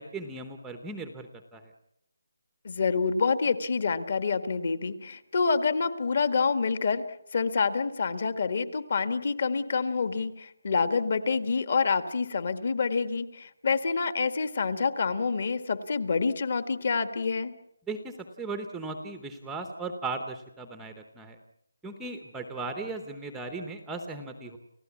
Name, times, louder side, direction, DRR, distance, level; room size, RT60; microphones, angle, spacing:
voice 1, 0.0-1.7 17.9-21.4 21.8-24.6, right 3 dB, 5° right, 6 dB, 0.9 m, -37 dB
voice 2, 2.6-7.0 7.3-17.5, left 5 dB, 40° left, 11 dB, 1.6 m, -27 dB
30.0 x 16.5 x 8.4 m, 0.78 s
hypercardioid pair, 180°, 0 cm